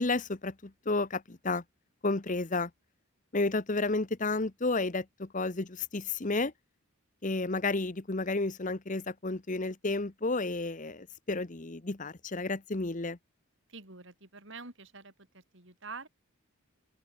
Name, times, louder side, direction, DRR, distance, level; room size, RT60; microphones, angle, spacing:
voice 1, 0.0-1.6 2.0-2.7 3.3-6.5 7.2-13.2, left 3 dB, 35° left, 1.0 m, -31 dB
voice 2, 13.7-16.1, right 4 dB, 55° right, 4.3 m, -47 dB
open air
head